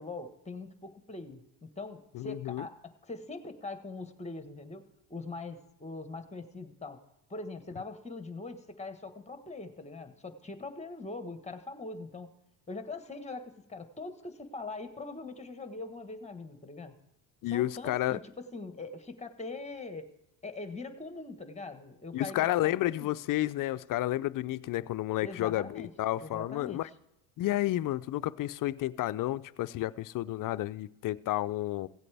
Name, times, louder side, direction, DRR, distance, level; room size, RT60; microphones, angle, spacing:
voice 1, 0.0-4.8 5.1-7.0 7.3-12.3 12.7-16.9 17.5-20.1 20.4-23.1 25.2-25.9 26.2-26.8, left 3 dB, 15° left, 8 dB, 1.3 m, -42 dB
voice 2, 2.1-2.7 17.4-18.2 22.1-26.9 27.4-31.9, left 15 dB, 45° left, 15 dB, 0.4 m, -31 dB
16.5 x 8.3 x 3.4 m, 0.86 s
supercardioid pair, 95°, 50 cm